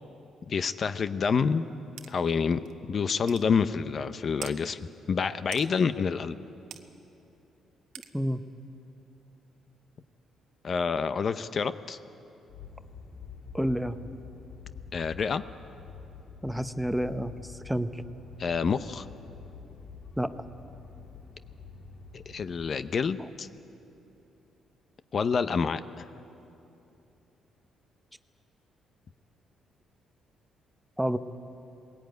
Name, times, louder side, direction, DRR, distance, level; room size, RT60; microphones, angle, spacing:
voice 1, 0.5-1.7 2.1-2.6 2.9-4.8 5.1-6.3 10.6-12.0 14.9-15.4 18.4-19.0 22.1-23.5 25.1-26.0, left 5 dB, 50° left, 12 dB, 0.7 m, -28 dB
sound 1, 2.0-2.1 2.7-2.8 3.3-3.5 4.4-4.6 5.5-5.7 6.7-6.8 7.9-8.1, right 10 dB, 85° right, 1.1 m, -42 dB
sound 2, 12.5-22.7, left 5 dB, 65° left, 2.4 m, -47 dB
voice 2, 13.5-14.0 16.4-18.0 20.2-20.3 23.2-23.3 31.0-31.2, equal, 5° right, 10 dB, 0.8 m, -29 dB
20.5 x 16.5 x 9.4 m, 2.8 s
cardioid pair, 90°, 0 cm